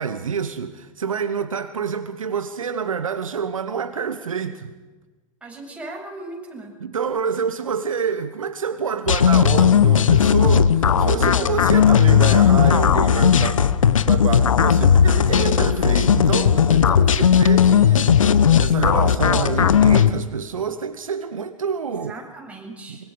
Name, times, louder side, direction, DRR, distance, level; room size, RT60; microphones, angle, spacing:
voice 1, 0.0-4.7 6.8-13.8 14.1-22.2 22.9-23.0, right 6 dB, 75° right, 1.3 m, -27 dB
voice 2, 5.4-6.8 21.9-23.1, right 2 dB, 5° right, 7.5 m, -37 dB
sound 1, 9.1-20.1, left 8 dB, 75° left, 1.0 m, -16 dB
25.0 x 24.0 x 5.2 m
figure-of-eight pair, 90°, 17 cm